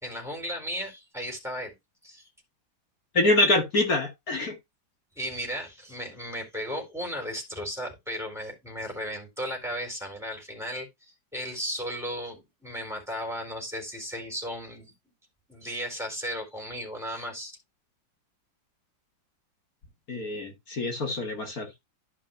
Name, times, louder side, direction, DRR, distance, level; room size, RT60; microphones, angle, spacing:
voice 1, 0.0-1.7 2.0-2.3 5.2-14.9 15.5-17.5, equal, ahead, 4.1 m, -35 dB
voice 2, 3.1-4.6 20.1-21.8, left 2 dB, 50° left, 2.3 m, -25 dB
12.5 x 5.5 x 2.7 m
omnidirectional pair, 2.1 m